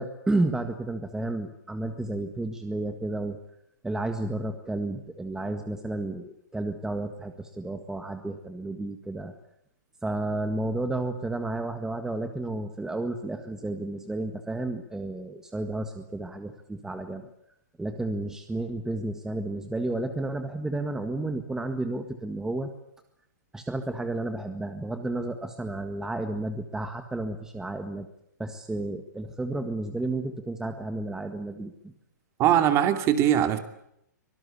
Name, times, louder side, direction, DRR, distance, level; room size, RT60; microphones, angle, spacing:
voice 1, 0.0-3.4 3.8-9.3 10.0-17.3 17.8-22.7 23.5-28.1 28.4-31.9, right 2 dB, 5° right, 6 dB, 1.7 m, -32 dB
voice 2, 32.4-33.6, right 10 dB, 30° right, 8 dB, 2.6 m, -21 dB
25.0 x 19.0 x 8.4 m, 0.77 s
hypercardioid pair, 135°, 10 cm